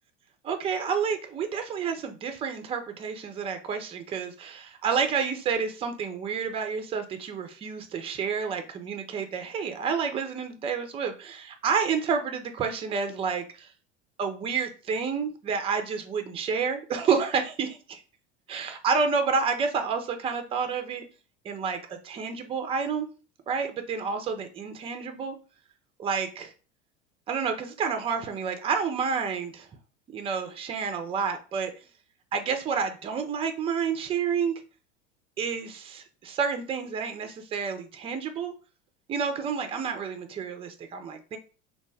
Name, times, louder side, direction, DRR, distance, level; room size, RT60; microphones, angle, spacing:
voice 1, 0.4-13.7 14.2-18.0 18.5-21.1 21.4-23.1 23.5-25.4 26.0-26.5 27.3-29.7 30.1-31.7 32.3-34.6 35.4-38.5 39.1-41.4, right 6 dB, 15° right, 7 dB, 0.4 m, -29 dB
2.8 x 2.1 x 3.2 m, 0.36 s
hypercardioid pair, 80°, 38 cm